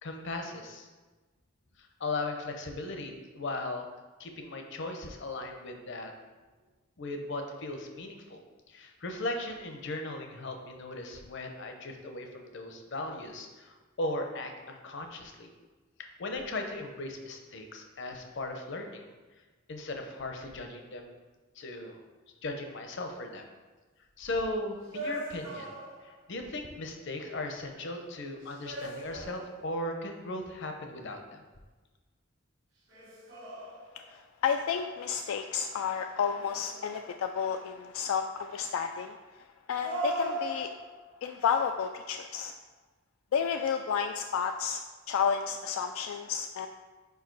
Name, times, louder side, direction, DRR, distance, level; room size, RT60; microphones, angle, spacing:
voice 1, 0.0-0.9 1.8-3.9 4.2-6.1 7.0-15.5 16.0-19.1 19.7-21.1 21.5-22.0 22.4-23.5 24.2-25.7 26.0-31.4, left 2 dB, 60° left, 4 dB, 0.7 m, -37 dB
sound 1, 24.9-26.3 28.4-29.9 32.9-34.2 36.3-37.4 39.8-41.1, right 1 dB, 75° right, 1.3 m, -38 dB
voice 2, 33.9-39.1 39.7-40.7 41.2-42.5 43.3-44.8 45.1-46.7, left 7 dB, 85° left, 5 dB, 0.3 m, -31 dB
5.1 x 4.7 x 4.5 m, 1.3 s
head